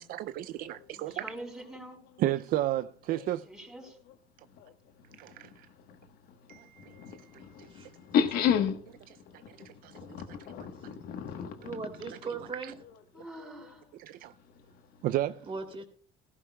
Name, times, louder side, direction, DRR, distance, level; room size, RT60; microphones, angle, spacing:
voice 1, 0.0-1.2 2.2-3.5 5.2-5.5 6.5-7.7 9.8-10.4 12.1-12.2 14.0-14.3 15.0-15.5, right 14 dB, 70° right, 0.4 m, -33 dB
voice 2, 0.9-2.0 2.3-2.4 3.5-4.0 13.1-13.8, right 1 dB, 5° right, 4.6 m, -45 dB
voice 3, 8.1-8.8 10.1-11.7, left 8 dB, 75° left, 1.2 m, -29 dB
voice 4, 11.6-12.7 14.2-14.3 15.5-15.8, right 4 dB, 35° right, 2.7 m, -39 dB
15.5 x 14.5 x 2.2 m
cardioid pair, 95°, 15 cm